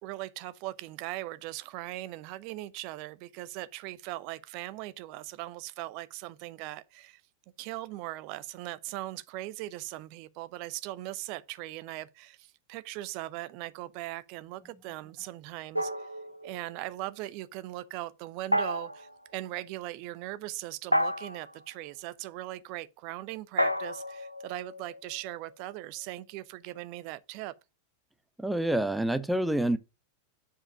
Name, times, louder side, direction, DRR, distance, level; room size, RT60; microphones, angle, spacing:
voice 1, 0.0-7.2 7.6-16.1 16.4-27.5, right 16 dB, 45° right, 0.6 m, -39 dB
sound 1, 15.7-16.8 18.5-19.1 20.9-21.6 23.6-25.3, equal, 90° left, 0.5 m, -31 dB
voice 2, 28.4-29.8, right 1 dB, 5° right, 0.7 m, -27 dB
7.5 x 4.9 x 4.9 m
figure-of-eight pair, 90°, 0 cm